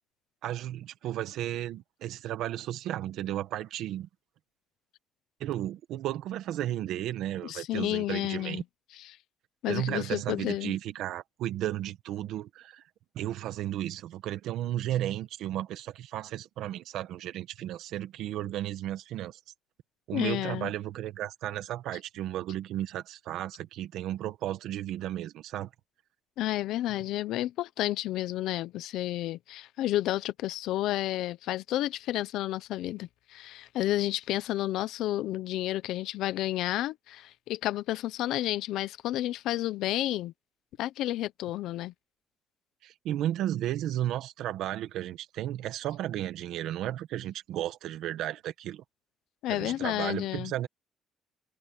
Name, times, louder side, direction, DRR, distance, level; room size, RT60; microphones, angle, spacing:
voice 1, 0.4-4.1 5.4-8.6 9.7-12.8 13.1-19.4 20.1-25.7 42.8-48.8 49.5-50.7, right 12 dB, 75° right, 1.4 m, -34 dB
voice 2, 7.4-8.6 9.6-10.7 20.1-20.7 26.4-40.3 40.8-41.9 49.4-50.5, left 14 dB, 85° left, 0.7 m, -31 dB
open air
cardioid pair, 175°, 0 cm